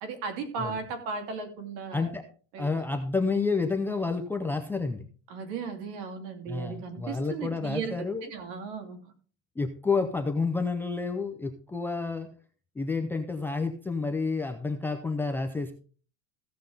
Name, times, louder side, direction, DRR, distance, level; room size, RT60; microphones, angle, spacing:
voice 1, 0.0-2.1 2.5-2.8 5.3-9.0 9.9-10.1, right 5 dB, 60° right, 6 dB, 2.8 m, -36 dB
voice 2, 1.9-2.2 2.6-5.1 6.5-8.3 9.6-12.3 12.8-15.7, left 4 dB, 5° left, 4 dB, 0.5 m, -29 dB
15.5 x 7.1 x 3.9 m, 0.39 s
cardioid pair, 170°, 35 cm